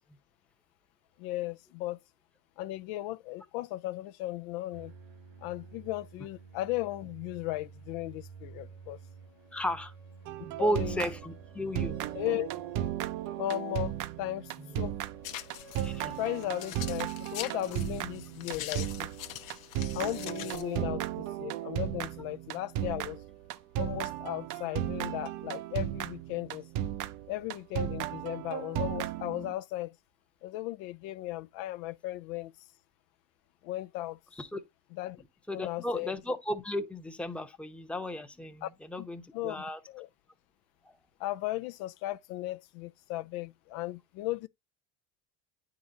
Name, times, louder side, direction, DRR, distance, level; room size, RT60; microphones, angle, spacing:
voice 1, 1.2-2.0 2.6-4.9 5.4-9.0 10.6-11.0 12.1-12.5 13.4-15.0 16.1-19.1 19.9-23.2 23.8-26.7 27.3-30.0 30.4-32.5 33.6-34.2 34.9-35.2 35.5-36.1 38.6-38.7 39.3-40.1 41.2-44.5, left 16 dB, 70° left, 0.5 m, -36 dB
sound 1, 4.7-18.2, right 5 dB, 80° right, 1.9 m, -52 dB
voice 2, 9.5-9.9 10.4-12.0 14.6-14.8 15.8-16.2 34.4-34.6 35.5-39.8 40.9-41.0, equal, 5° left, 0.8 m, -34 dB
sound 2, 10.3-11.5 11.7-29.5, right 12 dB, 55° right, 0.6 m, -35 dB
sound 3, 15.2-20.8, left 12 dB, 90° left, 0.8 m, -43 dB
9.4 x 3.8 x 2.7 m
supercardioid pair, 100°, 38 cm